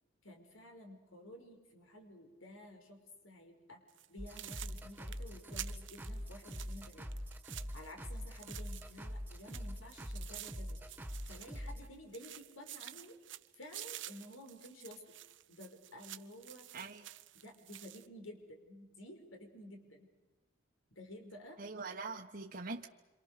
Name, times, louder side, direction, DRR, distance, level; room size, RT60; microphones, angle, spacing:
voice 1, 0.2-3.8 4.1-7.1 7.7-10.8 11.3-13.2 13.6-15.2 15.5-16.7 17.3-20.1 21.0-21.6, left 1 dB, 90° left, 4 dB, 5.3 m, -52 dB
sound 1, 3.9-4.1 4.4-9.1 9.4-11.9 12.1-18.1, right 14 dB, 65° right, 1.0 m, -50 dB
sound 2, 4.2-11.9, equal, 10° right, 1.9 m, -44 dB
voice 2, 16.7-17.1 21.6-22.9, right 3 dB, 45° right, 1 dB, 1.4 m, -43 dB
27.5 x 27.0 x 6.8 m, 1.2 s
head